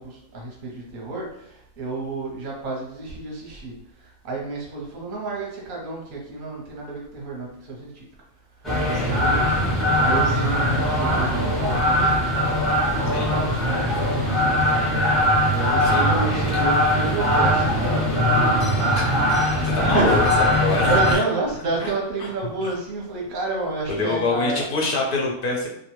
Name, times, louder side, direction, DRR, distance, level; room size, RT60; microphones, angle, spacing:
voice 1, 0.0-3.7 4.2-8.1 8.8-9.5 10.0-12.2 13.0-15.0 15.5-18.0 18.3-18.9 19.8-20.2 20.8-24.6, right 3 dB, 45° right, -2 dB, 0.8 m, -30 dB
sound 1, 8.6-21.2, equal, ahead, 0.5 m, -21 dB
voice 2, 19.6-21.2 21.8-21.9 22.2-22.3 22.6-22.7 23.9-25.7, left 3 dB, 60° left, 0 dB, 0.6 m, -25 dB
2.5 x 2.2 x 3.0 m, 0.73 s
omnidirectional pair, 1.4 m